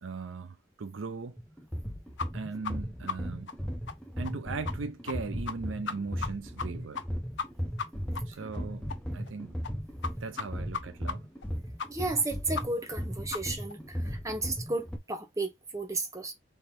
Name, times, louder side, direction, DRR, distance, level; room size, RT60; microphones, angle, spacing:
voice 1, 0.0-1.4 2.3-3.5 4.2-7.0 8.3-8.9 9.1-9.5 10.2-11.2, right 4 dB, 85° right, 0.6 m, -38 dB
sound 1, 1.4-15.0, equal, 5° left, 0.8 m, -36 dB
sound 2, 2.2-2.3 2.6-2.7 3.1-3.2 3.5-3.6 3.9-4.0 4.2-4.3 4.6-4.7 5.1-5.2 5.5-5.6 5.9-6.3 6.6-6.7 6.9-7.0 7.4-7.5 7.8-7.9 8.1-8.2 8.5-8.6 8.9-9.0 9.3-9.4 9.6-9.7 10.0-10.1 10.4-10.5 10.7-10.8 11.1-11.2 11.4-11.5 11.8-11.9 12.2-12.3 12.5-12.6 12.9-13.0 13.3-13.4 13.7-13.8, left 5 dB, 65° left, 0.5 m, -35 dB
voice 2, 11.9-16.3, right 2 dB, 15° right, 1.1 m, -33 dB
3.4 x 3.1 x 4.4 m
head